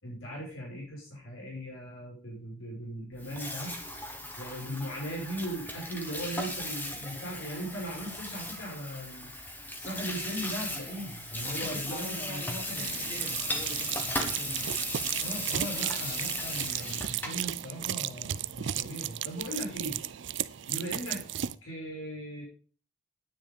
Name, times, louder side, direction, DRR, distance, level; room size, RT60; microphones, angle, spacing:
voice 1, 0.0-3.7 4.4-9.3 9.8-12.4 12.7-13.2 15.2-20.0 20.7-21.2 21.6-22.4, equal, 80° left, -2 dB, 5.7 m, -38 dB
Water tap faucet / Sink (filling or washing), 3.1-17.5, left 1 dB, 10° left, 1.6 m, -37 dB
voice 2, 11.4-14.6, left 1 dB, 30° left, -1 dB, 5.5 m, -43 dB
sound 1, 12.8-21.6, right 11 dB, 60° right, 0.5 m, -35 dB
9.9 x 9.5 x 5.3 m, 0.40 s
head